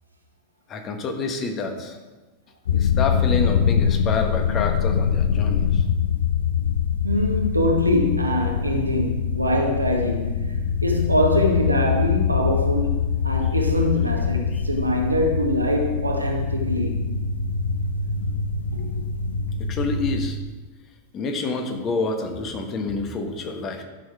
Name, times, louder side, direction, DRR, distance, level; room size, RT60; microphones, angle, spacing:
voice 1, 0.7-2.0 2.7-5.8 14.5-14.6 19.6-20.4 21.1-23.8, left 3 dB, 30° left, 4 dB, 1.5 m, -28 dB
sound 1, 2.6-20.3, left 7 dB, 65° left, 0.7 m, -24 dB
voice 2, 7.0-10.6 10.8-17.0 18.7-19.0, equal, 85° right, 1 dB, 1.6 m, -23 dB
12.0 x 6.6 x 4.9 m, 1.2 s
figure-of-eight pair, 90°, 0 cm